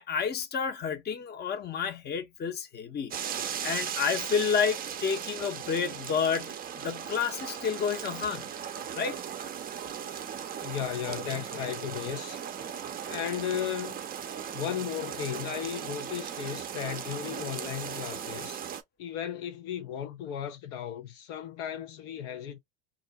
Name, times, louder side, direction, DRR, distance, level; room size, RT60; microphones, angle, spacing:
voice 1, 0.0-6.5 6.8-8.5 9.0-9.2, left 6 dB, 30° left, 0.8 m, -30 dB
sound 1, 3.1-18.8, right 8 dB, 25° right, 0.5 m, -37 dB
voice 2, 10.6-12.4 13.1-14.0 14.5-18.6 19.0-22.6, left 9 dB, 65° left, 0.7 m, -35 dB
2.5 x 2.1 x 3.8 m
hypercardioid pair, 95°, 35 cm